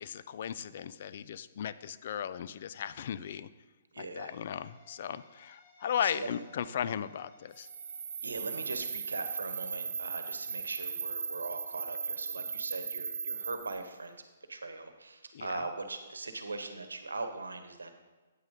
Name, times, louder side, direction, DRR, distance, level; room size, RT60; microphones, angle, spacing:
voice 1, 0.0-3.5 4.0-7.7 15.3-15.5, left 9 dB, 55° left, 15 dB, 0.4 m, -36 dB
voice 2, 3.9-4.4 6.0-6.3 8.2-14.2 14.5-17.9, right 3 dB, 85° right, 8 dB, 1.1 m, -40 dB
sound 1, 4.3-12.4, left 2 dB, 35° left, 2.1 m, -65 dB
sound 2, 7.5-13.9, right 6 dB, 60° right, 0.6 m, -38 dB
9.1 x 8.9 x 3.7 m, 1.3 s
hypercardioid pair, 130°, 0 cm